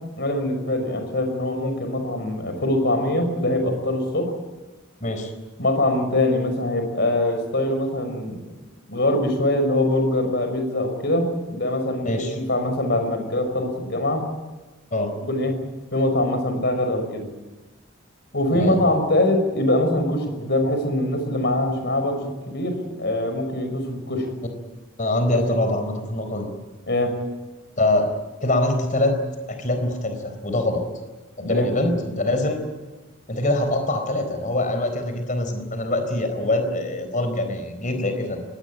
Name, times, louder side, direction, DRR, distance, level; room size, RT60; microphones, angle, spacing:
voice 1, 0.2-4.3 5.6-8.4 8.9-14.2 15.3-15.5 15.9-17.2 18.3-24.3 25.3-25.5 26.9-27.1 31.4-31.7, left 1 dB, 55° left, 6 dB, 5.6 m, -23 dB
voice 2, 5.0-5.3 12.0-12.4 14.9-15.1 18.5-18.8 25.0-26.5 27.8-28.1 28.4-29.2 29.5-30.8 31.4-32.6 33.3-38.4, left 1 dB, 40° left, 7 dB, 4.2 m, -24 dB
22.5 x 19.0 x 9.1 m, 1.2 s
head